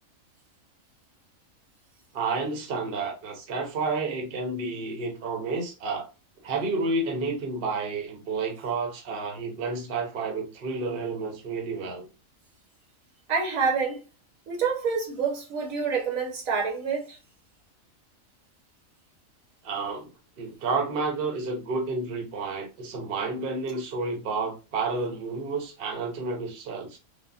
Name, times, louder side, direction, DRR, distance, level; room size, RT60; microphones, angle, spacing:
voice 1, 2.1-6.1 6.4-12.1 19.6-20.1 20.4-27.0, right 3 dB, 50° right, 0.9 m, -30 dB
voice 2, 13.3-14.0 14.5-17.2, right 5 dB, 75° right, 1.3 m, -27 dB
3.4 x 2.1 x 2.3 m
omnidirectional pair, 1.4 m